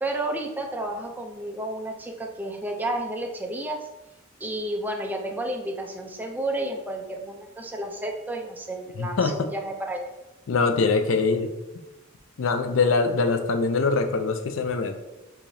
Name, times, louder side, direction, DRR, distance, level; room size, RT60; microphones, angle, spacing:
voice 1, 0.0-3.9 4.4-10.1, right 1 dB, 10° right, 2 dB, 0.4 m, -31 dB
voice 2, 9.0-9.5 10.5-11.5 12.4-15.0, left 4 dB, 70° left, 7 dB, 0.4 m, -23 dB
4.7 x 2.9 x 2.6 m, 1.0 s
head